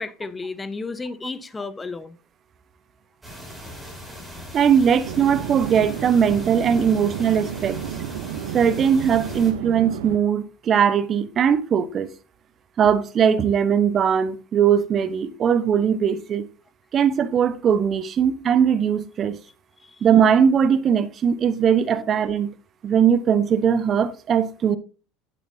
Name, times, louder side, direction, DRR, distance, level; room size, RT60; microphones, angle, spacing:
voice 1, 0.0-2.2 19.8-20.1 22.0-22.1, left 3 dB, 20° left, 0.9 m, -33 dB
sound 1, 3.2-9.5, left 1 dB, 10° right, 5.0 m, -39 dB
voice 2, 4.5-7.8 8.5-12.1 12.8-16.5 16.9-19.4 20.0-22.5 22.8-24.8, right 8 dB, 40° right, 0.9 m, -20 dB
sound 2, 5.0-10.2, right 11 dB, 80° right, 0.8 m, -32 dB
8.9 x 7.4 x 2.7 m
hypercardioid pair, 90°, 0 cm